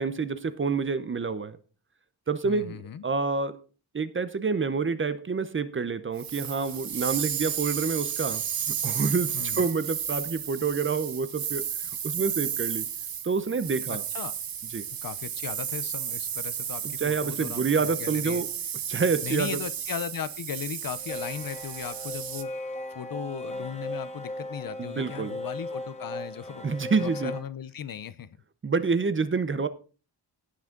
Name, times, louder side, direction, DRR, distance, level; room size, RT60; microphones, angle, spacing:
voice 1, 0.0-1.6 2.3-2.8 3.0-3.6 3.9-11.7 12.0-12.9 13.2-14.0 14.7-14.8 16.8-18.5 18.9-19.6 24.8-25.4 26.6-27.3 28.6-29.7, right 5 dB, 30° right, 0.7 m, -28 dB
voice 2, 2.4-3.0 9.3-9.7 13.9-14.3 15.0-18.4 19.2-28.4, left 8 dB, 55° left, 0.7 m, -37 dB
sound 1, 6.2-22.4, right 8 dB, 60° right, 1.1 m, -33 dB
sound 2, 20.9-27.4, left 1 dB, 15° left, 2.1 m, -37 dB
17.5 x 6.2 x 3.8 m
wide cardioid pair, 175°, 40 cm